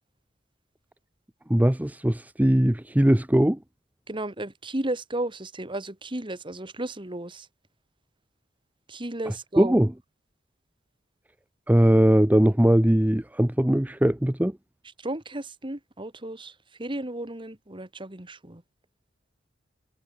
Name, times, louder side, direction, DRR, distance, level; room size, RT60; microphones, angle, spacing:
voice 1, 1.5-3.6 9.3-9.9 11.7-14.6, right 1 dB, 10° right, 0.7 m, -20 dB
voice 2, 4.1-7.5 8.9-9.8 15.0-16.5 16.8-18.6, right 1 dB, 25° right, 2.0 m, -34 dB
head